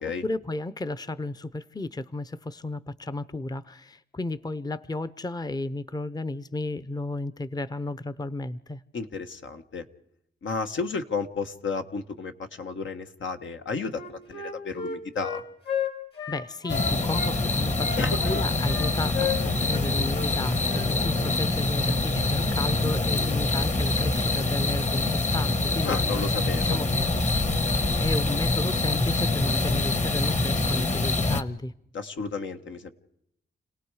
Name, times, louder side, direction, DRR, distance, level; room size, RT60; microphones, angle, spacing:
voice 1, 0.0-8.8 16.3-26.0 26.6-27.4 28.0-31.7, left 2 dB, 20° left, 14 dB, 0.7 m, -33 dB
voice 2, 8.9-9.9 10.4-14.0 14.3-15.4 18.0-18.4 25.8-26.8 31.9-32.9, left 4 dB, 80° left, 6 dB, 1.4 m, -32 dB
Wind instrument woodwind instrument, 13.9-17.3 17.8-19.8 20.1-20.3 20.6-20.9 21.2-21.4, left 7 dB, 60° left, 4.0 m, -33 dB
sound 1, 16.7-31.4, left 2 dB, 35° left, 1.4 m, -25 dB
29.5 x 18.5 x 4.9 m, 0.76 s
cardioid pair, 85°, 19 cm